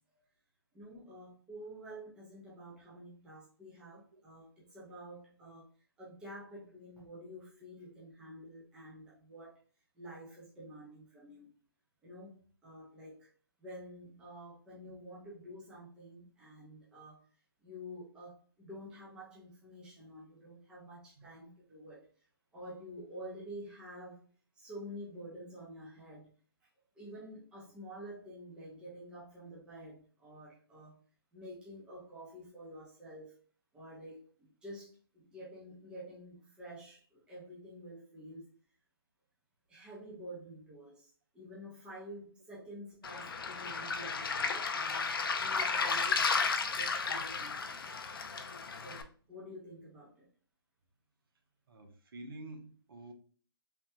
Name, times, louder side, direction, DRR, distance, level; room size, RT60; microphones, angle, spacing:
voice 1, 0.7-5.6 6.0-9.5 9.9-11.5 12.0-13.3 13.6-17.2 17.6-22.1 22.5-24.3 24.6-26.3 26.9-31.0 31.3-33.4 33.7-38.5 39.7-45.0 45.4-47.9 48.8-50.3, equal, 5° right, 0.8 m, -49 dB
Waves surf, 43.0-49.0, left 5 dB, 65° left, 0.5 m, -33 dB
voice 2, 51.7-53.1, right 2 dB, 60° right, 0.8 m, -48 dB
3.4 x 2.3 x 2.8 m
hypercardioid pair, 155°, 13 cm